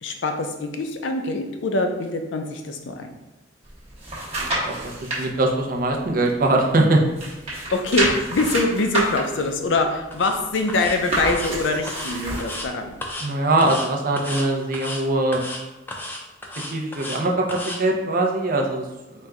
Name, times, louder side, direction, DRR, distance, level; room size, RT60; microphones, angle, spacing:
voice 1, 0.0-3.1 7.5-13.0, left 2 dB, 90° left, 5 dB, 0.5 m, -24 dB
sound 1, 3.6-5.2 5.7-6.8 7.1-12.7 13.1-13.2, right 1 dB, 35° right, 1.0 m, -29 dB
voice 2, 4.7-7.0 13.2-15.4 16.7-18.8, right 2 dB, 50° right, 1 dB, 0.6 m, -22 dB
sound 2, 10.1-10.4 10.7-11.0 11.3-11.5 11.9-12.7 13.0-13.3 13.6-13.9 14.2-14.5 14.7-15.0 15.3-15.6 15.9-17.2 17.5-17.8, left 1 dB, 10° left, 0.5 m, -33 dB
4.4 x 2.2 x 3.6 m, 1.0 s
head